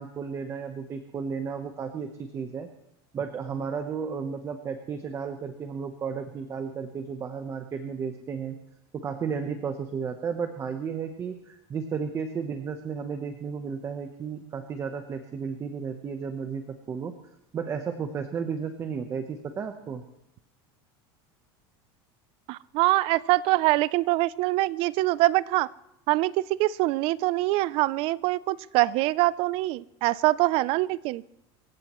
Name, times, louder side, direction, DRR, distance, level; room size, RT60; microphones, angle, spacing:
voice 1, 0.0-2.7 3.1-8.6 8.9-17.2 17.5-20.0, right 6 dB, 20° right, 7 dB, 1.0 m, -33 dB
voice 2, 22.5-25.7 26.1-26.3 26.6-31.2, right 18 dB, 45° right, 20 dB, 0.5 m, -24 dB
27.5 x 15.5 x 3.1 m, 0.84 s
supercardioid pair, 155°, 13 cm